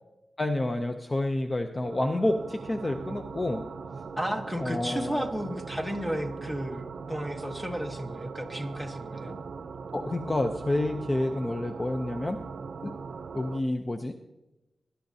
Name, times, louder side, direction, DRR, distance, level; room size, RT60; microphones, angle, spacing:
voice 1, 0.4-3.7 4.6-5.3 9.9-12.4 12.8-12.9 13.3-14.1, left 1 dB, 25° left, 6 dB, 0.5 m, -29 dB
sound 1, 1.8-13.6, right 5 dB, 80° right, 0.5 m, -40 dB
voice 2, 4.2-9.4, equal, ahead, 4 dB, 1.1 m, -33 dB
20.5 x 11.5 x 2.7 m, 0.99 s
wide cardioid pair, 160°, 0 cm